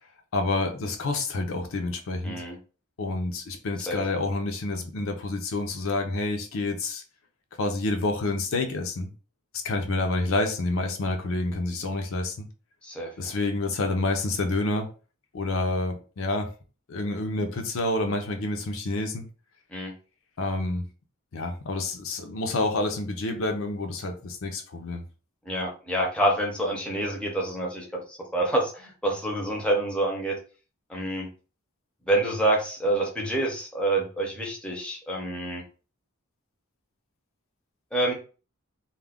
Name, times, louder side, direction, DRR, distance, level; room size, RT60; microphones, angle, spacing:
voice 1, 0.3-2.4 3.0-7.0 7.6-9.1 9.5-12.5 13.2-14.9 15.3-16.5 16.9-19.2 20.4-20.8 21.3-25.0, left 2 dB, 70° left, 0.5 m, -28 dB
voice 2, 2.2-2.6 3.9-4.0 12.8-13.3 19.7-19.9 25.5-30.4 30.9-31.3 32.1-35.6 37.9-38.1, right 1 dB, 5° left, 0.6 m, -27 dB
2.3 x 2.1 x 3.4 m
head